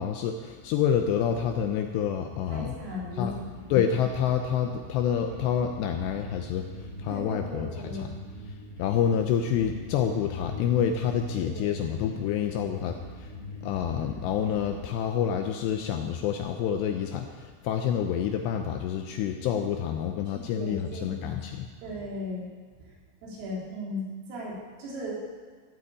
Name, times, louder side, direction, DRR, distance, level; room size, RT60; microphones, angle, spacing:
voice 1, 0.0-2.7 3.2-3.3 3.7-8.1 8.8-13.3 13.6-21.7, left 8 dB, 80° left, 5 dB, 2.5 m, -28 dB
sound 1, 2.3-14.8, left 2 dB, 25° left, 3.1 m, -41 dB
voice 2, 2.5-3.6 7.1-8.1 11.3-11.8 20.3-22.5 22.8-22.9 23.2-25.2, left 1 dB, 85° right, -5 dB, 6.2 m, -37 dB
14.5 x 8.4 x 8.6 m, 1.6 s
omnidirectional pair, 5.7 m